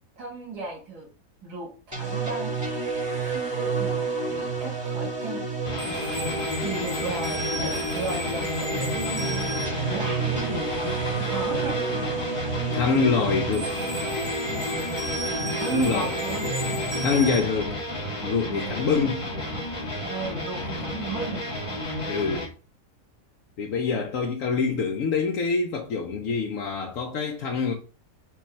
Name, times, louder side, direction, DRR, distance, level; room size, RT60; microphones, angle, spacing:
voice 1, 0.2-1.1 1.4-2.6 3.2-4.0 4.3-5.5 6.6-9.5 9.9-10.7 11.2-11.8 15.6-16.5 18.4-18.8 20.0-21.4, right 4 dB, 80° right, 2.1 m, -35 dB
sound 1, 1.9-17.4, right 3 dB, 15° right, 1.7 m, -30 dB
sound 2, 5.6-22.5, left 1 dB, 25° left, 1.0 m, -32 dB
voice 2, 12.7-13.8 15.7-16.1 17.0-17.8 18.2-19.2 22.1-22.5 23.6-27.7, left 5 dB, 65° left, 1.0 m, -25 dB
4.6 x 2.6 x 4.2 m
omnidirectional pair, 1.6 m